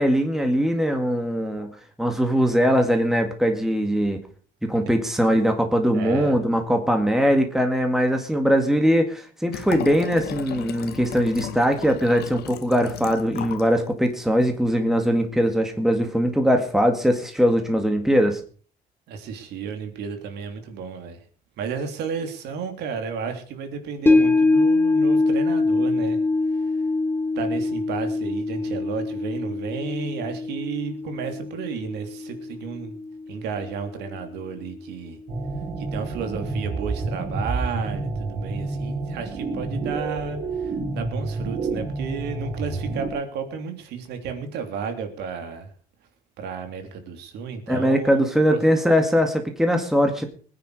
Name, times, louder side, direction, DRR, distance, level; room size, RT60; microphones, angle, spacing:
voice 1, 0.0-1.7 2.0-4.2 4.6-18.4 47.7-50.3, equal, ahead, 4 dB, 2.1 m, -21 dB
voice 2, 5.9-6.4 19.1-21.2 21.6-26.2 27.3-32.9 33.3-35.2 35.8-45.7 46.4-48.2 48.5-48.6, right 6 dB, 80° right, 6 dB, 3.1 m, -32 dB
Liquid, 9.5-13.7 14.1-14.2, left 10 dB, 70° left, 1.4 m, -36 dB
sound 1, 24.1-34.4 34.8-34.9, left 3 dB, 15° left, 2.2 m, -24 dB
sound 2, 35.3-43.1, right 3 dB, 60° right, 4.8 m, -29 dB
20.5 x 9.7 x 4.9 m, 0.43 s
cardioid pair, 110°, 17 cm